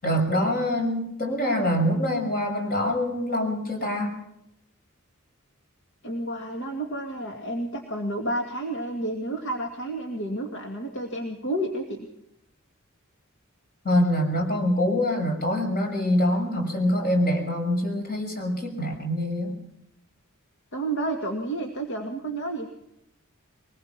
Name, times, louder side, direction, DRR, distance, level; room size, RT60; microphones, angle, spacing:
voice 1, 0.0-4.2 13.8-19.6, left 1 dB, 45° left, 2 dB, 6.5 m, -25 dB
voice 2, 6.0-12.1 20.7-22.7, right 1 dB, 60° left, 2 dB, 2.3 m, -30 dB
23.5 x 20.5 x 6.0 m, 0.80 s
head